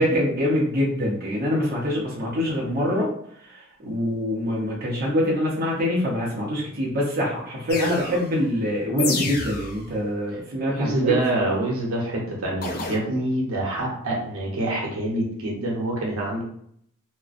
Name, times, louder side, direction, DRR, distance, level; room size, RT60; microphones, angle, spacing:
voice 1, 0.0-3.1 3.8-11.1, left 1 dB, 45° right, -5 dB, 0.6 m, -24 dB
sound 1, 7.7-8.3 9.0-9.8 12.6-13.0, left 3 dB, 45° left, 0.4 m, -28 dB
voice 2, 10.6-16.4, right 1 dB, 85° right, -3 dB, 0.8 m, -26 dB
2.4 x 2.1 x 2.4 m, 0.68 s
head